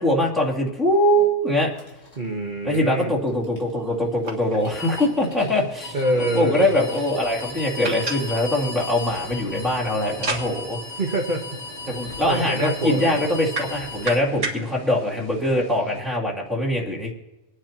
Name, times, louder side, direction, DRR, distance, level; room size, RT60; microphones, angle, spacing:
voice 1, 0.0-1.7 2.6-10.8 11.9-17.1, left 1 dB, ahead, -3 dB, 2.7 m, -22 dB
sound 1, 1.7-14.2, left 2 dB, 80° left, 3.2 m, -37 dB
voice 2, 2.2-3.1 5.9-6.7 11.0-11.4 11.9-12.0 12.3-13.3, right 1 dB, 40° right, -1 dB, 1.5 m, -25 dB
sound 2, 4.2-16.0, right 2 dB, 75° right, 2.2 m, -36 dB
26.0 x 9.7 x 3.0 m, 1.0 s
omnidirectional pair, 1.3 m